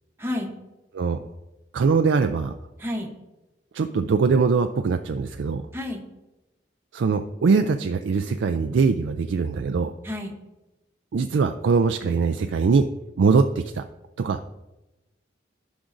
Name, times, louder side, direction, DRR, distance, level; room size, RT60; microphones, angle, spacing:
voice 1, 0.2-0.5 2.8-3.1 5.7-6.0 10.0-10.4, left 1 dB, 15° right, 0 dB, 0.9 m, -30 dB
voice 2, 0.9-1.3 1.7-2.5 3.7-5.6 6.9-9.9 11.1-12.9 13.2-13.8 14.2-14.4, right 5 dB, 80° right, 7 dB, 0.4 m, -22 dB
14.0 x 6.0 x 2.6 m, 1.0 s
head